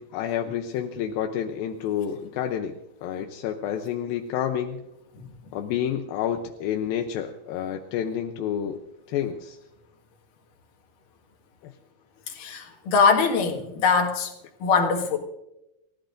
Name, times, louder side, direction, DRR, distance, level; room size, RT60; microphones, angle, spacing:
voice 1, 0.0-4.8 5.5-8.8 9.1-9.6 11.6-11.7, left 9 dB, 85° left, 5 dB, 2.6 m, -29 dB
voice 2, 12.4-14.3 14.6-15.2, left 5 dB, 70° left, 3 dB, 3.3 m, -22 dB
30.0 x 15.5 x 2.6 m, 0.90 s
omnidirectional pair, 4.1 m